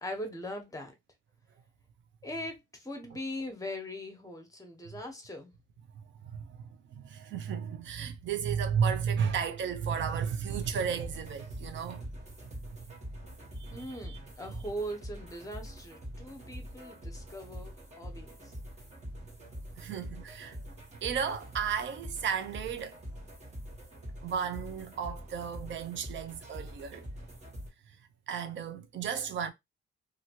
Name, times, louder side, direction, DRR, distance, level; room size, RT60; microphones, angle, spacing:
voice 1, 0.0-0.9 2.2-5.5 13.7-18.4, equal, 15° left, 1.1 m, -40 dB
voice 2, 6.0-12.1 13.6-14.2 14.5-14.6 19.8-20.6 21.0-23.0 24.2-27.1 27.9-28.0 28.3-29.5, right 7 dB, 70° right, 0.7 m, -34 dB
sound 1, 10.5-27.7, equal, 35° right, 1.5 m, -45 dB
2.8 x 2.7 x 2.9 m
cardioid pair, 90°, 20 cm